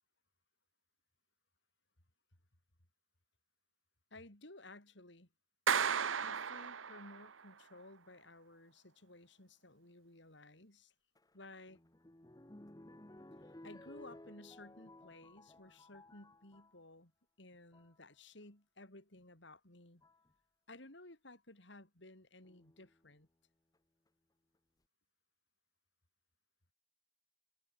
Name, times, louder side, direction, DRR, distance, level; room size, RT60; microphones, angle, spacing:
voice 1, 4.1-5.3 6.2-10.9 11.3-11.8 13.5-17.1 17.4-20.0 20.7-23.3, left 2 dB, 65° left, 4.2 m, -56 dB
Clapping, 5.7-7.3, right 7 dB, 85° right, 1.0 m, -34 dB
sound 1, 11.2-16.8 17.5-18.0 19.2-19.3 20.0-20.3 22.4-23.1 23.7-23.8 24.1-24.2, left 1 dB, 20° left, 1.0 m, -57 dB
head